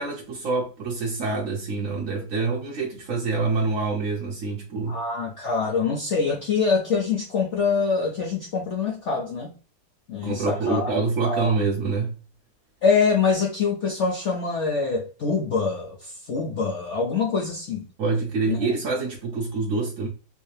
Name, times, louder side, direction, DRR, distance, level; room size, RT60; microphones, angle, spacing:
voice 1, 0.0-5.0 10.2-12.1 18.0-20.1, right 4 dB, 65° right, 0.8 m, -26 dB
voice 2, 4.9-9.5 10.1-10.9 11.2-11.5 12.8-17.9 18.5-18.6, left 5 dB, 75° left, 0.6 m, -24 dB
3.4 x 2.7 x 3.2 m
omnidirectional pair, 2.0 m